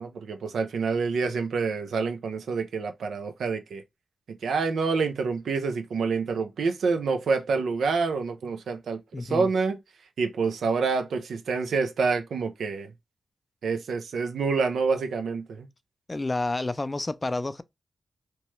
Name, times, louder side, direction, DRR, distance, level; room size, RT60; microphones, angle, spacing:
voice 1, 0.0-3.8 4.4-9.8 10.2-12.9 13.6-15.7, right 4 dB, 80° right, 0.4 m, -27 dB
voice 2, 9.1-9.5 16.1-17.6, left 2 dB, 30° left, 0.3 m, -29 dB
2.9 x 2.2 x 3.0 m
supercardioid pair, 40°, 0 cm